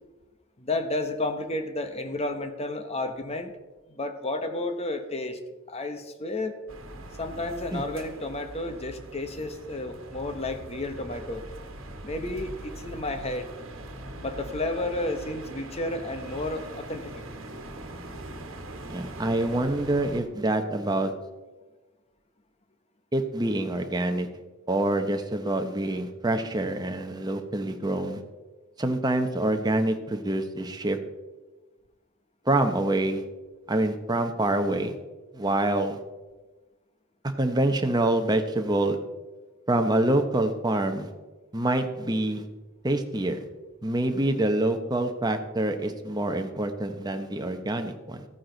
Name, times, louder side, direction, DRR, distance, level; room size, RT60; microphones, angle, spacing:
voice 1, 0.6-3.5 3.9-5.4 5.7-6.6 7.2-11.4 12.0-13.5 14.2-17.2, left 2 dB, 30° left, 8 dB, 1.0 m, -32 dB
sound 1, 6.7-20.2, right 1 dB, 60° right, 1.5 m, -42 dB
voice 2, 18.9-21.1 23.1-24.3 24.7-28.2 28.8-31.0 32.5-33.2 33.7-35.0 35.3-36.0 37.2-39.0 39.7-41.1 41.5-42.4 42.8-43.4 43.8-48.3, right 1 dB, 20° right, 6 dB, 0.9 m, -26 dB
14.5 x 9.4 x 3.9 m, 1.2 s
head